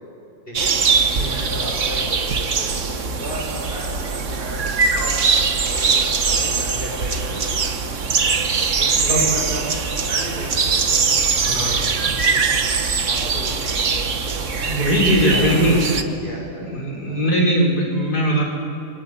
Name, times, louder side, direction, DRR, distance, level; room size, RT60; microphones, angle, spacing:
voice 1, 0.5-0.8 1.1-7.7 8.8-9.6 10.0-11.0 11.4-11.9 12.2-12.4 13.0-13.9 14.6-16.8 17.1-17.2, equal, 35° left, -4 dB, 6.3 m, -34 dB
sound 1, 0.5-16.0, right 5 dB, 50° right, 1.6 m, -21 dB
voice 2, 1.2-1.5 9.1-9.2 11.4-11.8 14.4-15.8 16.6-18.4, equal, 70° left, -2 dB, 5.3 m, -20 dB
29.5 x 22.5 x 8.9 m, 2.6 s
omnidirectional pair, 1.7 m